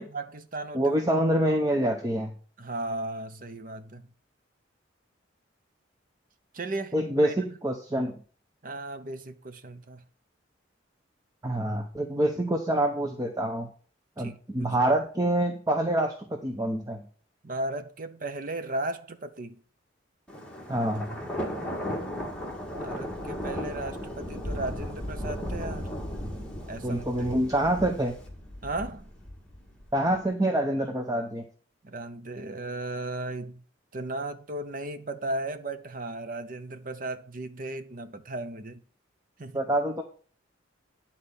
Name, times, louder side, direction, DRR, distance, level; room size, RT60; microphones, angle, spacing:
voice 1, 0.0-1.0 2.6-4.1 6.5-7.0 7.2-7.3 8.6-10.0 14.2-14.7 17.4-19.6 22.7-25.9 26.7-27.0 28.6-29.1 31.8-33.6 33.9-38.8 39.4-39.6, right 2 dB, 45° right, 0.8 m, -36 dB
voice 2, 0.7-2.3 6.9-8.1 11.4-13.7 14.2-16.1 16.4-17.0 20.7-21.1 26.8-28.1 29.9-31.4 39.5-40.0, right 1 dB, 20° right, 0.8 m, -26 dB
Thunder, 20.3-30.1, equal, 5° left, 1.8 m, -36 dB
10.0 x 4.4 x 6.9 m
head